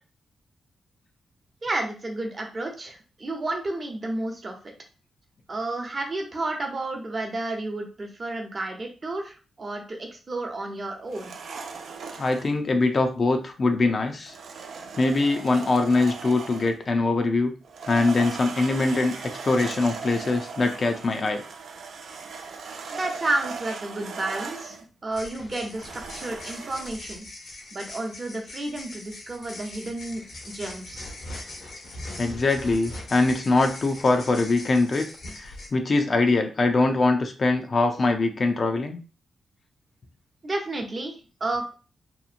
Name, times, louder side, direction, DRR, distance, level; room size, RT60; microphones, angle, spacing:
voice 1, 1.6-4.7 5.5-11.3 22.9-27.3 27.7-31.1 40.4-41.7, right 2 dB, 40° right, 2 dB, 0.7 m, -31 dB
sound 1, 11.1-12.5 14.2-16.8 17.6-24.8 25.7-27.0, right 5 dB, 75° right, 0.3 m, -38 dB
voice 2, 12.2-14.3 15.0-17.5 17.9-21.4 32.2-35.0 35.4-39.0, left 3 dB, 45° left, 5 dB, 0.4 m, -23 dB
sound 2, 25.1-35.7, left 1 dB, 75° left, 0.8 m, -41 dB
2.9 x 2.1 x 2.5 m, 0.36 s
cardioid pair, 70°, 0 cm